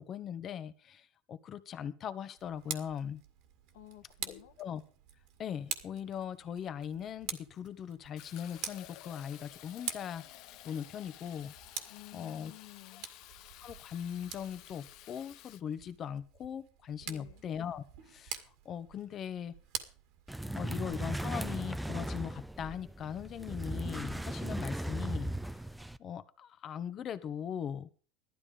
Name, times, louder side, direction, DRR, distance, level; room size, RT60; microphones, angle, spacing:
voice 1, 0.0-3.2 4.3-4.8 5.4-10.2 10.6-11.5 12.1-12.5 13.6-19.5 20.5-25.6 26.0-27.9, left 8 dB, 40° left, 1.3 m, -40 dB
Tick, 2.4-20.8, right 10 dB, 65° right, 2.0 m, -46 dB
voice 2, 3.7-4.6 11.8-13.1 17.0-17.4, left 16 dB, 85° left, 1.6 m, -53 dB
Fill (with liquid), 8.2-15.6, left 14 dB, 60° left, 0.9 m, -53 dB
sound 1, 20.3-26.0, right 1 dB, 5° right, 0.6 m, -37 dB
14.5 x 12.5 x 5.1 m
supercardioid pair, 115°, 0 cm